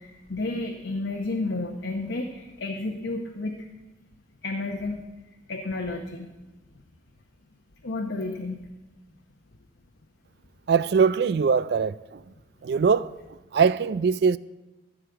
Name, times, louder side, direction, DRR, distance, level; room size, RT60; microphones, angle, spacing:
voice 1, 0.0-3.6 4.4-5.0 5.5-6.3 7.8-8.7, left 2 dB, 90° left, 0.9 m, -31 dB
voice 2, 10.7-12.0 12.6-13.1 13.5-14.4, right 6 dB, 60° right, 0.3 m, -21 dB
14.0 x 4.9 x 7.9 m
head